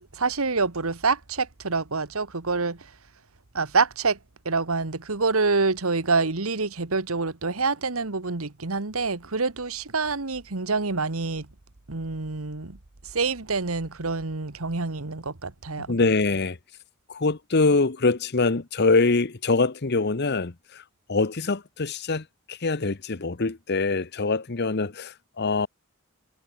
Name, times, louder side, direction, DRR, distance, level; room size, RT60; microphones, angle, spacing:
voice 1, 0.1-2.9 3.5-4.2 4.4-11.5 11.9-12.8 13.0-16.0, right 4 dB, 85° right, 1.6 m, -26 dB
voice 2, 15.9-16.6 17.1-20.8 21.1-25.7, left 3 dB, 50° left, 1.0 m, -24 dB
head